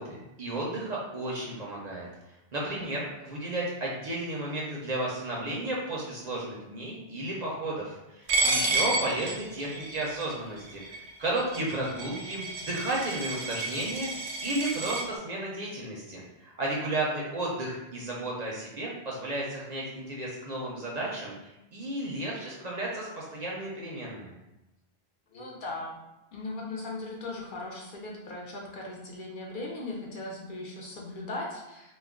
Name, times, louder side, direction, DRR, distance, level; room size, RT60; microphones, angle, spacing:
voice 1, 0.0-2.1 2.5-24.3, right 1 dB, 55° right, -4 dB, 0.5 m, -33 dB
voice 2, 2.6-3.0 8.6-9.0 16.8-16.9 25.3-26.0 26.3-31.9, left 2 dB, 60° left, -3 dB, 0.7 m, -38 dB
Coin (dropping), 8.3-15.0, right 2 dB, 85° right, 0.8 m, -31 dB
2.3 x 2.1 x 3.5 m, 0.94 s
omnidirectional pair, 1.1 m